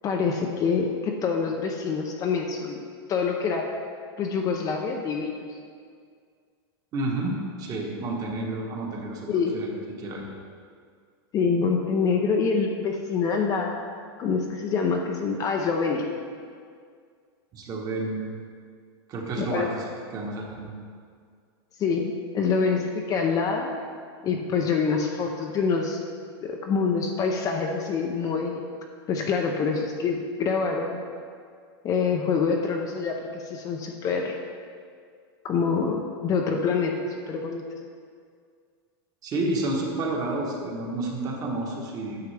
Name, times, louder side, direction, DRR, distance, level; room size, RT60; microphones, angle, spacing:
voice 1, 0.0-2.8 3.1-3.7 4.2-5.4 9.3-9.6 11.3-13.8 14.2-16.1 19.4-19.7 21.8-23.7 24.2-26.0 26.4-28.6 29.1-31.0 31.8-34.3 35.4-37.6, left 5 dB, 25° left, 2 dB, 0.6 m, -26 dB
voice 2, 6.9-9.7 10.0-10.3 17.5-18.3 19.1-19.7 20.1-20.7 39.2-42.2, right 2 dB, 30° right, 0 dB, 1.2 m, -30 dB
9.4 x 6.6 x 3.3 m, 2.1 s
supercardioid pair, 145°, 13 cm